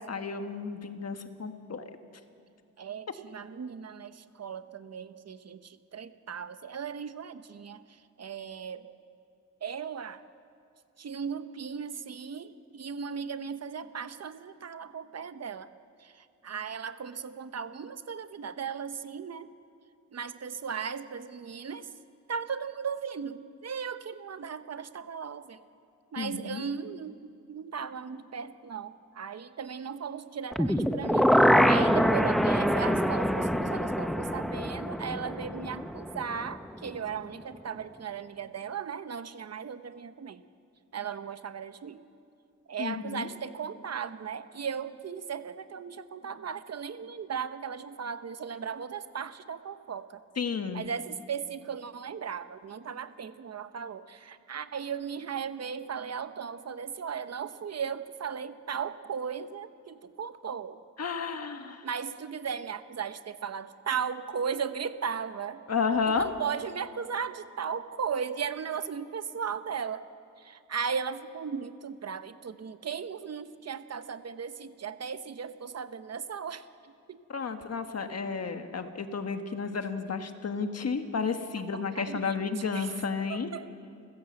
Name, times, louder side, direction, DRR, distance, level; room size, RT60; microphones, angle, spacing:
voice 1, 0.1-1.9 26.2-26.6 42.8-43.3 50.4-50.8 61.0-61.8 65.7-66.3 77.3-83.5, left 5 dB, 55° left, 7 dB, 1.4 m, -32 dB
voice 2, 2.8-7.8 8.2-8.8 9.6-10.2 11.0-15.7 16.0-19.5 20.1-21.9 22.3-25.6 26.1-40.4 40.9-42.0 42.7-50.2 50.7-60.8 61.8-65.6 66.1-70.0 70.4-76.6 77.1-77.2 81.7-82.4 82.7-82.9 83.3-83.7, right 7 dB, 55° right, 12 dB, 0.9 m, -37 dB
sound 1, 30.5-36.5 36.9-37.0, equal, ahead, 0.6 m, -25 dB
29.5 x 15.5 x 7.8 m, 2.5 s
wide cardioid pair, 165°, 31 cm